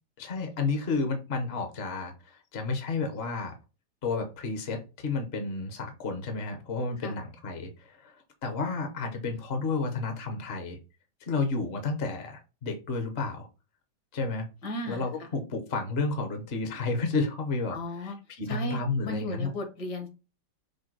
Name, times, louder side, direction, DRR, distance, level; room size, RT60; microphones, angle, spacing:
voice 1, 0.2-3.6 4.0-10.8 11.2-13.5 14.1-14.5 14.8-19.5, left 3 dB, 45° left, 5 dB, 0.9 m, -31 dB
voice 2, 14.6-15.1 17.7-18.2 18.5-20.1, left 1 dB, 65° left, 4 dB, 1.9 m, -35 dB
5.0 x 2.2 x 4.6 m, 0.30 s
omnidirectional pair, 2.0 m